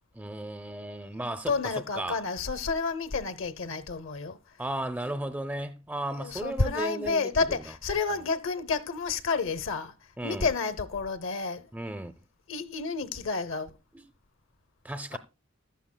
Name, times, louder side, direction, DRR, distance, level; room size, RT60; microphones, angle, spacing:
voice 1, 0.1-2.2 4.6-7.6 10.2-10.5 11.7-12.1 13.9-14.0 14.8-15.2, right 1 dB, 10° right, 0.4 m, -35 dB
voice 2, 1.5-4.4 6.2-9.9 10.2-11.7 12.5-13.7 15.1-15.2, left 4 dB, 70° left, 0.8 m, -30 dB
15.0 x 11.5 x 2.2 m
head